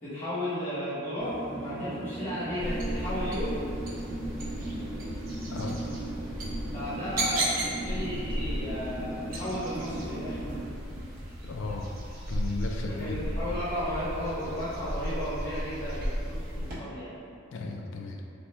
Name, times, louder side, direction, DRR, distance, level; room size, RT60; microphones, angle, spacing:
voice 1, 0.0-1.3 1.6-3.6 6.7-10.4 12.8-17.2, equal, 30° left, -16 dB, 0.8 m, -34 dB
sound 1, 1.2-10.6, right 1 dB, 65° right, 1.0 m, -38 dB
sound 2, 2.6-16.8, right 1 dB, 45° right, 0.7 m, -35 dB
voice 2, 5.5-5.9 11.4-11.9 12.3-13.2 17.5-18.2, left 3 dB, 65° left, 2 dB, 0.3 m, -35 dB
2.9 x 2.1 x 3.2 m, 2.5 s
head